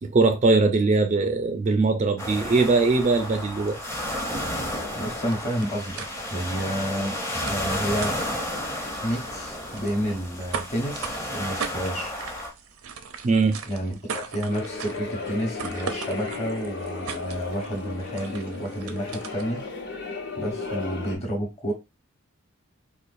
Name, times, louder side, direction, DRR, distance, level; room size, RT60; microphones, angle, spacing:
voice 1, 0.0-3.8 13.2-13.6 20.7-20.8, right 3 dB, 35° right, 0.3 m, -21 dB
sound 1, 2.2-12.5, left 1 dB, 15° left, 0.6 m, -32 dB
sound 2, 3.2-19.7, right 6 dB, 85° right, 0.5 m, -40 dB
voice 2, 5.0-7.2 7.4-8.2 9.0-12.1 13.6-19.6 20.4-21.7, equal, 30° left, 1.1 m, -30 dB
sound 3, 14.5-21.2, left 4 dB, 55° left, 1.0 m, -35 dB
4.5 x 2.4 x 2.5 m
head